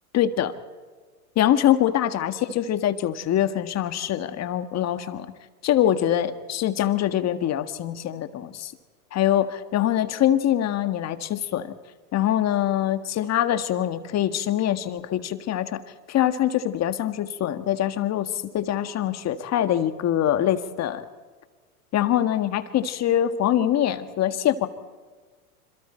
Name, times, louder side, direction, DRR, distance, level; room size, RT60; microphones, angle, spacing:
voice 1, 0.1-0.5 1.4-5.3 5.6-8.7 9.1-11.7 12.1-15.8 16.1-21.1 21.9-24.7, left 11 dB, 35° left, 10 dB, 1.8 m, -24 dB
27.0 x 27.0 x 4.5 m, 1.4 s
hypercardioid pair, 100°, 46 cm